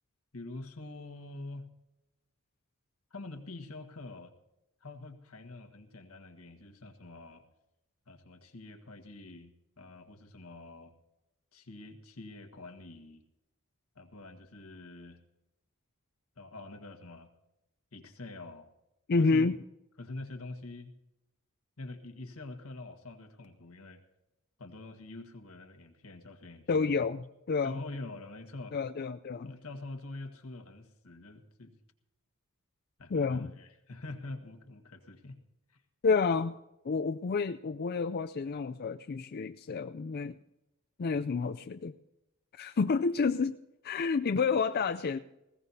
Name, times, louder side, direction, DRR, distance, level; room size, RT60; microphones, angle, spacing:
voice 1, 0.3-1.7 3.1-4.3 4.8-7.4 8.1-10.9 11.5-13.2 13.9-15.2 16.4-17.3 17.9-18.7 19.2-19.5 20.0-21.0 21.8-24.0 24.6-26.9 27.6-28.8 29.4-31.7 33.0-35.4 35.7-35.8, left 2 dB, 85° left, 5 dB, 1.6 m, -45 dB
voice 2, 19.1-19.6 26.7-27.8 28.7-29.5 33.1-33.5 36.0-36.5 36.8-40.4 41.0-41.9 42.5-43.6 43.8-45.2, left 4 dB, 50° left, 10 dB, 0.4 m, -29 dB
20.0 x 16.5 x 2.8 m, 0.92 s
head